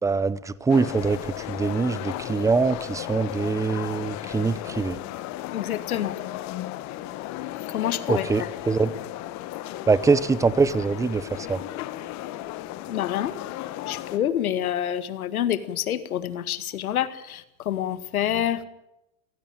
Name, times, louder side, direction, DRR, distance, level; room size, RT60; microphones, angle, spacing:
voice 1, 0.0-5.0 8.1-8.9 9.9-11.6, right 4 dB, 5° right, 17 dB, 0.8 m, -23 dB
sound 1, 0.7-14.2, left 14 dB, 40° left, 1.5 m, -35 dB
voice 2, 5.5-6.2 7.7-8.5 12.9-13.4 13.9-18.6, left 11 dB, 90° left, 12 dB, 2.0 m, -27 dB
22.5 x 16.0 x 8.9 m, 0.87 s
hypercardioid pair, 125°, 42 cm